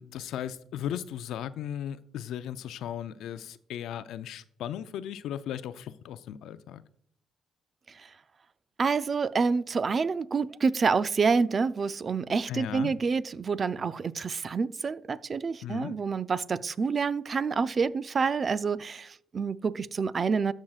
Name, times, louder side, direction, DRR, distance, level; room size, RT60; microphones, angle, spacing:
voice 1, 0.0-6.8 12.5-12.9 15.6-16.0, left 10 dB, 85° left, 0.4 m, -36 dB
voice 2, 8.8-20.5, right 5 dB, 40° right, 0.4 m, -28 dB
13.0 x 6.3 x 2.4 m
cardioid pair, 90°, 0 cm